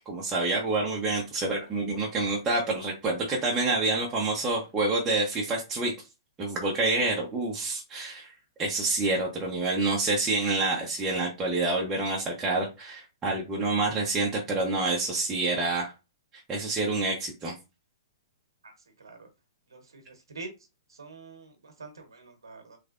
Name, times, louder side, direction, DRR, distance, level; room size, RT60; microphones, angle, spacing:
voice 1, 0.0-5.9 6.4-8.3 8.6-15.9 16.5-17.5, right 2 dB, 15° right, -3 dB, 0.9 m, -27 dB
voice 2, 21.0-21.5 21.8-22.8, right 3 dB, 85° right, 5 dB, 1.0 m, -44 dB
3.2 x 3.2 x 2.5 m, 0.27 s
hypercardioid pair, 135°, 2 cm